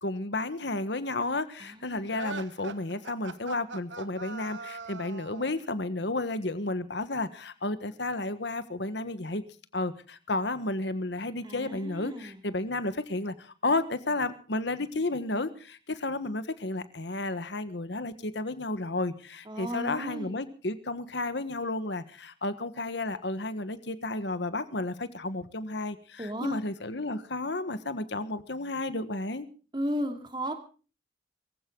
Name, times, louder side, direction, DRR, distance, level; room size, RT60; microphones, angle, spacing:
voice 1, 0.0-9.4 9.7-29.5, left 2 dB, 65° left, 12 dB, 1.4 m, -32 dB
voice 2, 1.6-2.2 11.4-12.4 19.4-20.4 26.2-26.6 29.7-30.5, equal, 25° right, 5 dB, 2.7 m, -34 dB
sound 1, 2.1-5.6, right 4 dB, 75° right, 1.4 m, -41 dB
23.0 x 15.5 x 3.8 m, 0.38 s
head